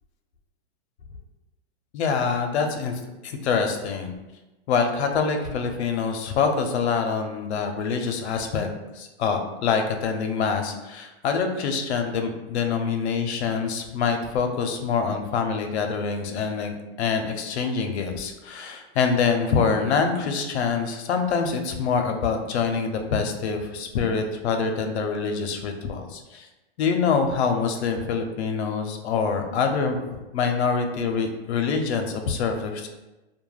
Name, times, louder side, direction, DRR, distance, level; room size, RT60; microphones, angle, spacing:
voice 1, 1.9-4.1 4.7-8.7 8.9-26.5 26.8-32.9, left 5 dB, 80° left, 5 dB, 0.5 m, -25 dB
2.2 x 2.1 x 3.1 m, 1.0 s
supercardioid pair, 170°, 32 cm